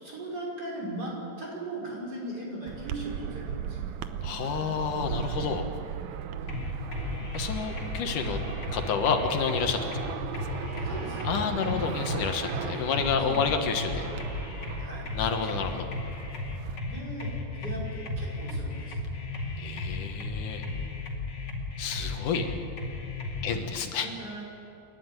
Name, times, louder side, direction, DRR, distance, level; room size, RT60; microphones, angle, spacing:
voice 1, 0.0-3.8 6.3-6.6 10.8-11.2 13.3-13.5 14.8-15.1 16.9-17.3 17.6-19.0 23.4-24.4, right 1 dB, 30° right, -4 dB, 5.8 m, -38 dB
sound 1, 2.7-16.8, right 8 dB, 75° right, 2.1 m, -37 dB
voice 2, 4.2-5.7 7.3-8.4 8.7-9.8 11.2-14.1 15.1-15.9 19.6-20.6 21.8-22.5 23.4-24.1, left 6 dB, 75° left, 5 dB, 2.8 m, -29 dB
sound 2, 6.5-23.4, left 2 dB, 35° left, 2.8 m, -35 dB
28.5 x 12.0 x 9.1 m, 2.7 s
omnidirectional pair, 3.7 m